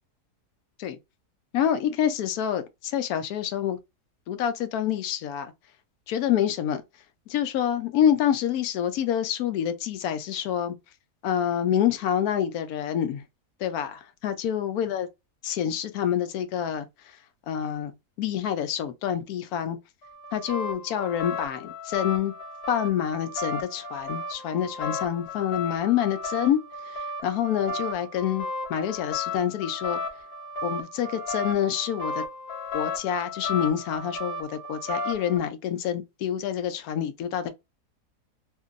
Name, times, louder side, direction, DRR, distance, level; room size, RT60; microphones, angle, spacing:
voice 1, 1.5-3.8 4.3-5.5 6.1-6.8 7.3-10.7 11.2-13.2 13.6-15.1 15.4-16.9 17.5-17.9 18.2-19.8 20.3-22.3 22.7-26.6 26.9-30.0 30.6-32.2 32.7-37.5, left 9 dB, 75° left, 1.0 m, -27 dB
sound 1, 20.0-35.4, left 2 dB, 50° left, 0.8 m, -34 dB
2.9 x 2.6 x 2.4 m
omnidirectional pair, 1.7 m